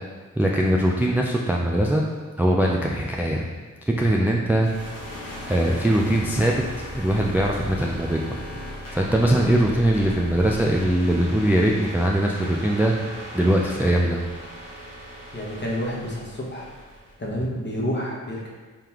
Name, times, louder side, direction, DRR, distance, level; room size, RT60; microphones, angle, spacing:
voice 1, 0.4-2.0 2.4-3.5 3.9-4.7 5.4-6.6 6.9-8.2 8.9-12.9 13.3-14.2, right 1 dB, 5° right, -1 dB, 0.3 m, -21 dB
sound 1, 4.6-17.4, equal, 85° left, 1.2 m, -37 dB
voice 2, 15.3-16.7 17.2-18.5, equal, 35° left, -3 dB, 0.9 m, -29 dB
3.8 x 3.2 x 2.9 m, 1.4 s
cardioid pair, 45°, 32 cm